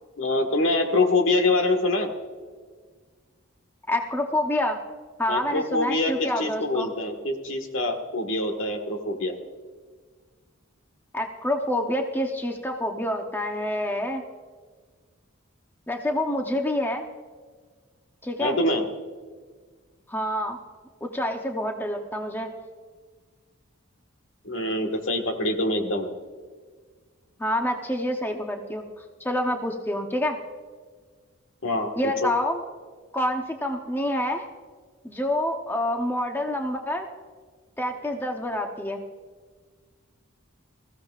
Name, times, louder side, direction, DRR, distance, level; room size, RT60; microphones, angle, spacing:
voice 1, 0.2-2.1 5.3-9.4 18.4-18.8 24.4-26.1 31.6-31.9 32.2-32.3, left 2 dB, 70° left, 5 dB, 1.6 m, -25 dB
voice 2, 3.9-4.8 5.2-6.9 11.1-14.2 15.9-17.0 18.2-18.6 20.1-20.6 21.0-22.5 27.4-30.4 32.0-32.6 33.1-34.4 35.0-37.1 37.8-39.0, left 1 dB, 10° left, 3 dB, 0.8 m, -27 dB
21.0 x 15.0 x 2.4 m, 1.5 s
head